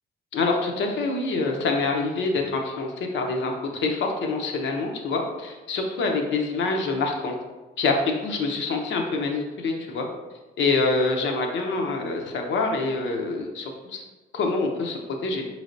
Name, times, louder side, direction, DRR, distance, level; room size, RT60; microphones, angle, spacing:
voice 1, 0.3-7.3 7.8-10.1 10.6-14.0 14.3-15.5, left 3 dB, 70° left, 2 dB, 0.7 m, -26 dB
4.7 x 3.2 x 2.6 m, 1.2 s
cardioid pair, 90°, 20 cm